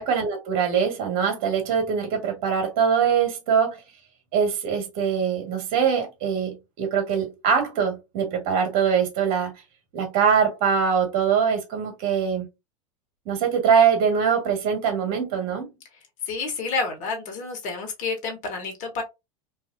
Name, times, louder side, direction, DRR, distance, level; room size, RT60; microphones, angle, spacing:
voice 1, 0.0-3.8 4.3-9.5 9.9-12.4 13.2-15.7, right 7 dB, 55° right, 1.5 m, -23 dB
voice 2, 16.3-19.0, left 4 dB, 45° left, 1.2 m, -29 dB
2.6 x 2.6 x 2.5 m
hypercardioid pair, 90°, 18 cm